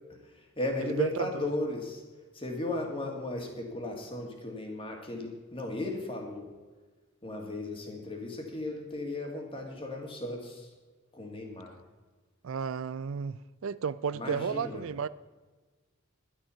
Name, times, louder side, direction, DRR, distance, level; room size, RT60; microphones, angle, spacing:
voice 1, 0.2-2.0 2.3-6.5 7.2-10.7 11.1-11.7 14.1-14.9, left 1 dB, 25° left, 2.2 m, -36 dB
voice 2, 0.8-1.3 12.4-15.1, right 6 dB, 70° right, 0.4 m, -33 dB
12.0 x 9.8 x 5.7 m
head